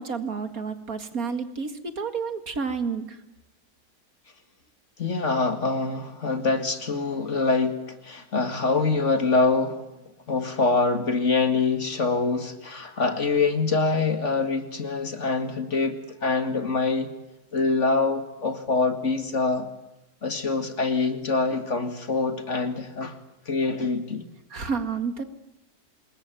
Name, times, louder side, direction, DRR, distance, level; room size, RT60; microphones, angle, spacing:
voice 1, 0.0-3.2 24.5-25.2, right 5 dB, 65° right, 9 dB, 2.5 m, -30 dB
voice 2, 5.0-9.8 10.3-17.1 17.5-19.7 20.2-23.1 23.5-24.2, left 3 dB, 50° left, 8 dB, 2.4 m, -25 dB
26.5 x 21.5 x 9.2 m, 0.96 s
omnidirectional pair, 1.7 m